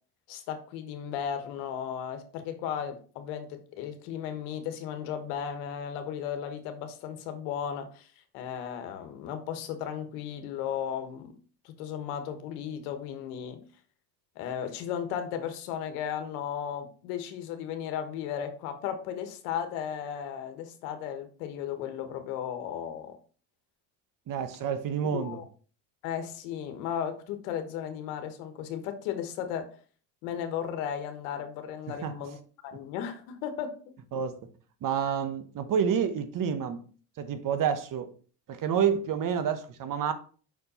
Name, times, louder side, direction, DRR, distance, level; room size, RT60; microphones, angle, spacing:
voice 1, 0.3-8.1 8.3-11.3 11.6-13.6 14.4-23.2 25.1-25.4 26.0-29.7 30.2-32.4 32.6-33.9, left 8 dB, 85° left, 1.3 m, -35 dB
voice 2, 24.3-25.4 32.0-32.1 34.1-34.4 34.8-36.8 37.2-38.1 38.5-40.1, right 7 dB, 50° right, 1.1 m, -28 dB
6.1 x 4.5 x 4.2 m
supercardioid pair, 95°, 43 cm